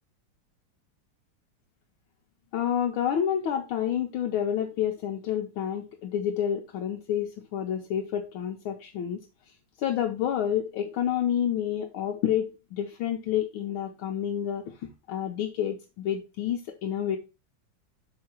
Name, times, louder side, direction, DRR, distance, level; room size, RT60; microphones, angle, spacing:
voice 1, 2.5-17.2, left 9 dB, 75° left, 2 dB, 1.5 m, -29 dB
6.1 x 4.8 x 4.4 m, 0.30 s
omnidirectional pair, 2.4 m